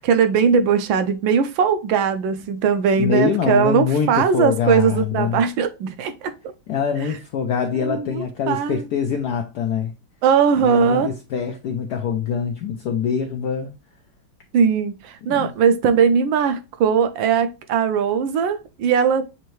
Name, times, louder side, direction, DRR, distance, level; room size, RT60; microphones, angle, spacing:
voice 1, 0.0-6.3 7.0-7.1 7.8-8.9 10.2-11.1 14.5-19.2, right 6 dB, 75° right, 1.3 m, -19 dB
voice 2, 3.0-5.4 6.7-9.9 10.6-13.7 15.3-15.5, left 7 dB, 75° left, 0.9 m, -24 dB
6.6 x 2.6 x 3.1 m
omnidirectional pair, 2.2 m